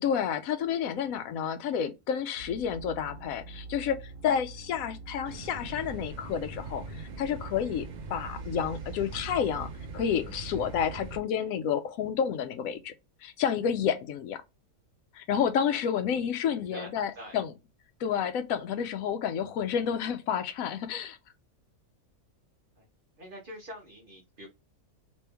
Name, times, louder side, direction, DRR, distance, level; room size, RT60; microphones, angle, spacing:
voice 1, 0.0-12.9 13.2-14.4 15.1-17.5 18.0-21.2, left 8 dB, 75° left, 1.0 m, -30 dB
sound 1, 2.3-11.0, right 2 dB, 65° right, 1.3 m, -45 dB
sound 2, 5.2-11.2, right 4 dB, 80° right, 0.4 m, -43 dB
voice 2, 16.6-17.4 22.8-22.9 23.2-24.5, equal, 40° right, 1.0 m, -45 dB
3.2 x 3.0 x 3.3 m
omnidirectional pair, 1.5 m